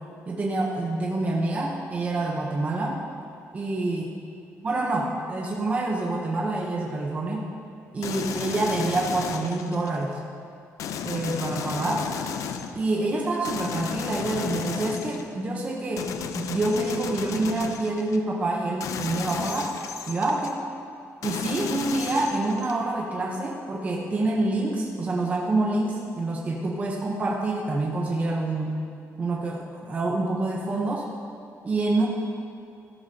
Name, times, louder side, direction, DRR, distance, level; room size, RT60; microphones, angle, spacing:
voice 1, 0.3-3.0 3.5-4.1 4.6-7.5 7.9-10.2 11.0-12.1 12.7-16.1 16.3-19.7 20.1-20.6 21.2-28.7 29.2-31.0 31.6-32.1, right 2 dB, 25° right, -2 dB, 0.9 m, -27 dB
sound 1, 8.0-10.0 10.8-12.9 13.4-15.4 16.0-18.2 18.8-20.5 21.2-22.9, left 7 dB, 75° left, 0.5 m, -33 dB
13.0 x 11.5 x 2.9 m, 2.5 s
cardioid pair, 175°, 6 cm